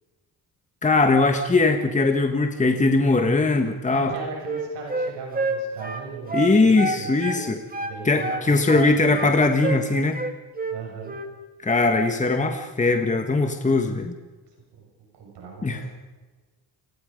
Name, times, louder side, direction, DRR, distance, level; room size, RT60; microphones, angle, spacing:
voice 1, 0.8-4.1 6.3-7.6 8.0-10.2 11.6-14.1 15.6-15.8, left 3 dB, 20° left, 5 dB, 1.5 m, -20 dB
Wind instrument woodwind instrument, 4.0-7.4 7.7-9.3 9.6-9.8 10.1-10.8 11.0-11.3, right 3 dB, 20° right, 2.5 m, -29 dB
voice 2, 4.1-7.5 7.8-9.3 10.7-11.2 14.8-14.9 15.1-16.0, right 5 dB, 90° right, 0 dB, 7.0 m, -38 dB
28.5 x 20.5 x 5.3 m, 1.3 s
cardioid pair, 130°, 40 cm